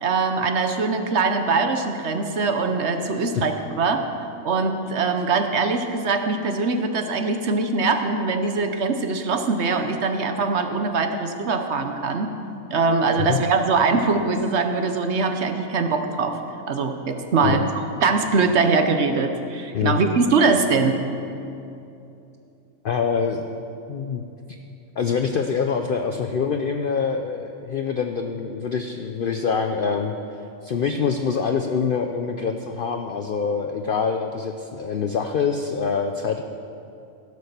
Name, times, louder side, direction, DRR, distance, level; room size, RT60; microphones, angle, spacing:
voice 1, 0.0-4.0 4.4-12.3 12.7-16.4 16.7-17.7 18.0-21.0, right 4 dB, 55° right, 6 dB, 1.0 m, -22 dB
voice 2, 22.8-23.4 23.9-24.2 25.0-30.1 30.6-36.4, left 6 dB, 65° left, 5 dB, 0.5 m, -25 dB
15.5 x 6.5 x 6.7 m, 2.7 s
omnidirectional pair, 1.5 m